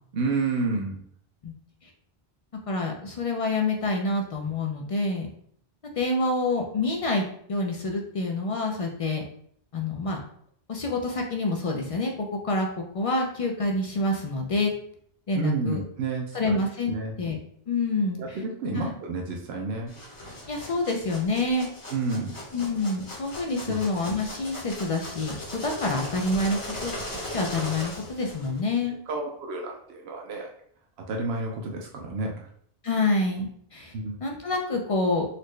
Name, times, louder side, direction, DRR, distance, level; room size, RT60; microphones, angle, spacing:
voice 1, 0.1-1.0 15.3-16.6 16.9-17.1 18.2-19.9 21.9-22.3 23.7-23.8 29.1-30.5 31.1-32.3 33.9-34.2, right 3 dB, 85° right, 1 dB, 0.8 m, -30 dB
voice 2, 2.7-5.3 6.0-9.2 9.7-10.2 10.7-12.7 12.9-14.7 15.3-15.8 16.3-17.4 17.7-18.4 18.7-18.9 20.5-21.7 22.5-26.9 27.3-29.0 32.8-33.9 34.2-35.3, left 2 dB, 55° left, 1 dB, 0.4 m, -27 dB
sound 1, 19.9-28.6, left 1 dB, 30° left, 1.0 m, -38 dB
4.0 x 2.1 x 3.1 m, 0.65 s
omnidirectional pair, 1.0 m